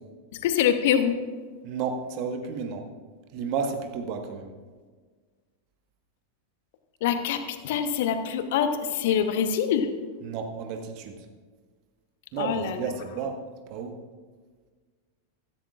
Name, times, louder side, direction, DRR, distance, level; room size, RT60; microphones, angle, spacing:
voice 1, 0.4-1.2 7.0-9.9 12.4-12.8, left 8 dB, 55° left, 9 dB, 1.0 m, -25 dB
voice 2, 1.6-2.9 3.3-4.5 10.2-11.1 12.3-13.4 13.7-13.9, right 5 dB, 45° right, 5 dB, 1.5 m, -32 dB
15.0 x 15.0 x 2.5 m, 1.5 s
figure-of-eight pair, 90°, 0 cm